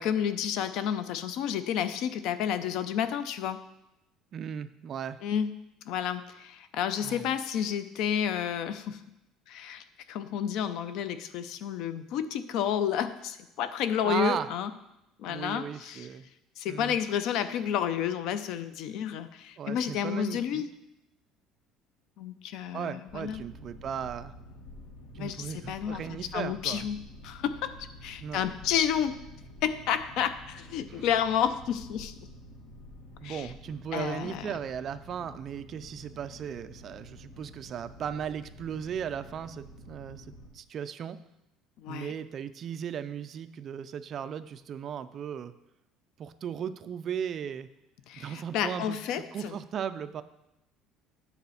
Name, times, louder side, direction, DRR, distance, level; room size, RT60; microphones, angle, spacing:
voice 1, 0.0-3.6 5.2-5.5 5.9-9.0 9.5-14.7 15.2-16.1 16.6-20.7 22.2-23.4 25.2-27.0 27.2-27.8 28.0-29.2 29.6-32.1 33.2-33.5 33.9-34.5 41.8-42.1 48.1-49.6, left 9 dB, 55° left, 12 dB, 0.5 m, -31 dB
voice 2, 4.3-5.2 7.0-7.3 14.0-14.5 15.3-16.3 16.7-17.0 19.6-20.6 22.7-24.3 25.1-26.9 28.2-28.5 30.9-31.0 33.2-40.3 40.5-41.2 41.9-45.5 46.2-47.7 48.2-50.2, right 8 dB, 30° right, 12 dB, 0.3 m, -36 dB
Boat Water vehicle, 23.1-40.5, left 1 dB, 75° left, 1.7 m, -49 dB
9.3 x 4.1 x 7.0 m, 0.88 s
cardioid pair, 175°, 0 cm